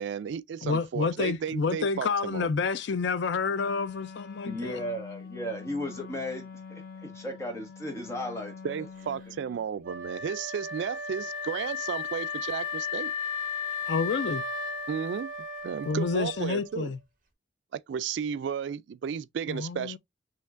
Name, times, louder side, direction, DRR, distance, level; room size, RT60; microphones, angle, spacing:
voice 1, 0.0-2.5 8.6-13.1 14.9-15.3 15.6-16.9 17.7-20.0, right 7 dB, 75° right, 0.3 m, -33 dB
voice 2, 0.6-4.8 13.9-14.4 15.9-17.0 19.5-20.0, left 4 dB, 75° left, 0.4 m, -29 dB
Wind instrument woodwind instrument, 3.5-9.6, left 5 dB, 55° left, 0.8 m, -45 dB
voice 3, 4.4-8.7, left 1 dB, 15° left, 1.3 m, -35 dB
Wind instrument woodwind instrument 2, 9.8-16.8, left 4 dB, 45° right, 1.2 m, -35 dB
5.6 x 3.1 x 2.5 m
head